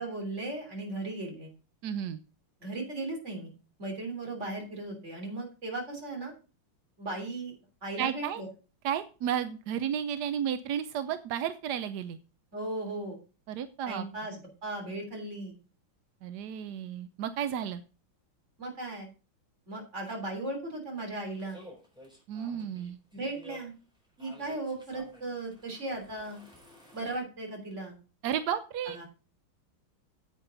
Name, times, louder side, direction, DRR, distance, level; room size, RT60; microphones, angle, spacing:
voice 1, 0.0-1.5 2.6-3.5 3.8-6.3 7.0-7.6 7.8-8.5 12.5-13.2 13.9-15.5 18.6-19.1 19.7-21.6 23.1-23.7 24.2-26.4 26.9-28.0 28.9-29.1, right 2 dB, 35° right, 2 dB, 3.7 m, -37 dB
voice 2, 1.8-2.2 8.0-8.4 8.8-12.2 13.5-14.1 16.2-17.8 22.3-23.0 28.2-29.0, right 9 dB, 70° right, 12 dB, 1.0 m, -32 dB
sound 1, 21.3-27.2, equal, ahead, 4.1 m, -53 dB
9.9 x 8.2 x 3.9 m, 0.34 s
omnidirectional pair, 2.3 m